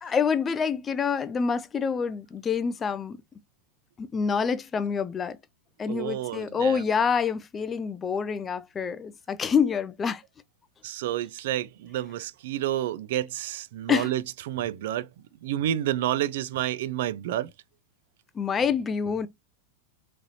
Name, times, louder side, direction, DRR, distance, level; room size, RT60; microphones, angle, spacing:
voice 1, 0.0-3.2 4.0-5.4 5.8-10.2 13.9-14.1 18.4-19.3, left 6 dB, 20° left, 0.4 m, -27 dB
voice 2, 5.9-6.8 10.8-15.1 15.4-17.5, right 12 dB, 65° right, 0.4 m, -29 dB
4.0 x 3.2 x 2.7 m
supercardioid pair, 145°, 0 cm